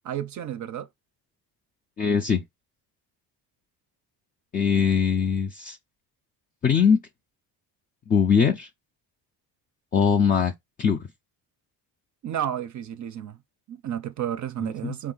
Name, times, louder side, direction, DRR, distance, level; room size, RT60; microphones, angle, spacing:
voice 1, 0.0-0.9 4.8-4.9 12.2-13.4 13.7-15.1, right 10 dB, 45° right, 0.5 m, -31 dB
voice 2, 2.0-2.4 4.5-5.8 6.6-7.0 8.1-8.7 9.9-10.5 10.8-11.1 14.8-14.9, left 6 dB, 25° left, 0.3 m, -21 dB
4.6 x 2.5 x 3.8 m
cardioid pair, 125°, 41 cm